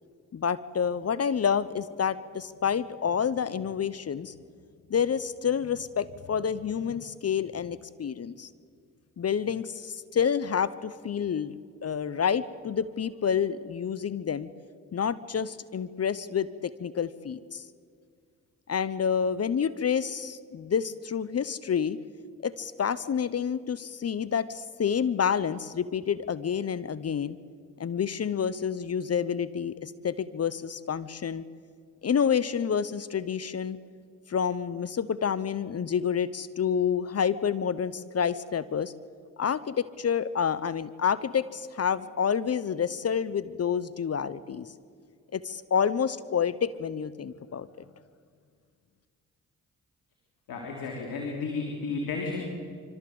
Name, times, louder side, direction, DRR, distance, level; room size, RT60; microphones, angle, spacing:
voice 1, 0.3-4.3 4.9-8.5 9.2-11.5 11.8-14.5 14.9-17.6 18.7-22.0 22.4-27.4 27.8-31.4 32.0-33.8 34.3-38.9 39.4-44.7 45.3-47.7, left 7 dB, 45° left, 17 dB, 0.9 m, -28 dB
voice 2, 50.5-52.4, left 4 dB, 75° left, 0 dB, 3.4 m, -32 dB
25.5 x 14.0 x 7.9 m, 2.1 s
supercardioid pair, 50°, 35 cm